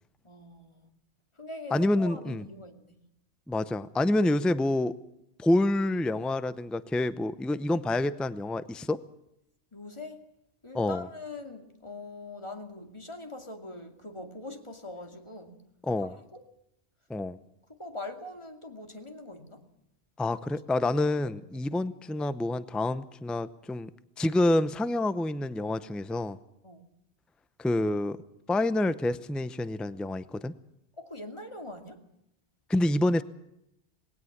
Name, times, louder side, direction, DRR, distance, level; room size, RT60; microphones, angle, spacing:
voice 1, 0.2-0.9 1.4-3.0 9.7-10.2 10.6-15.6 16.0-16.4 17.7-19.6 20.9-21.5 21.8-21.9 26.6-26.9 31.0-32.0, left 2 dB, 25° left, 5 dB, 2.5 m, -43 dB
voice 2, 1.7-2.4 3.5-4.9 5.4-9.0 10.7-11.1 15.8-16.2 17.1-17.4 20.2-23.9 24.2-26.4 27.6-28.2 28.5-30.5 32.7-33.2, left 1 dB, ahead, 14 dB, 0.5 m, -27 dB
20.5 x 17.5 x 7.3 m, 0.81 s
omnidirectional pair, 1.2 m